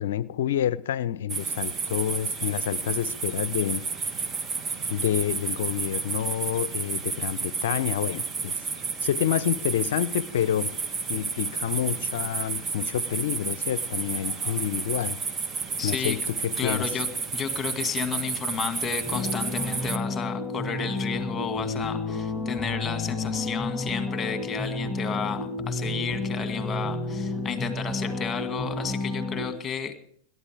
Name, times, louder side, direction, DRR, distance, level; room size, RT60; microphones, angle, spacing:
voice 1, 0.0-3.9 4.9-8.6 9.0-10.7 11.1-15.2 15.8-16.9, left 11 dB, 60° left, 20 dB, 0.7 m, -28 dB
sound 1, 1.3-20.0, right 5 dB, 20° right, 1.3 m, -31 dB
voice 2, 15.8-16.2 16.6-17.1 17.3-30.0, left 6 dB, 20° left, 8 dB, 2.2 m, -32 dB
sound 2, 19.0-29.5, left 2 dB, ahead, 7.8 m, -31 dB
28.0 x 12.5 x 3.6 m, 0.63 s
figure-of-eight pair, 90°, 0 cm